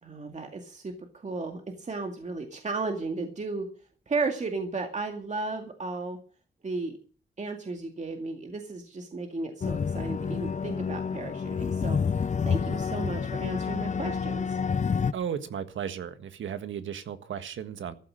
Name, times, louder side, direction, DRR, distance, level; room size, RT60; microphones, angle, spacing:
voice 1, 0.0-3.7 4.1-6.2 6.6-7.0 7.4-14.6, right 3 dB, 40° right, 2.2 m, -34 dB
sound 1, 9.6-15.1, left 6 dB, 40° left, 0.7 m, -29 dB
voice 2, 15.1-17.9, right 8 dB, 85° right, 1.6 m, -35 dB
14.5 x 12.0 x 6.4 m
cardioid pair, 95°, 19 cm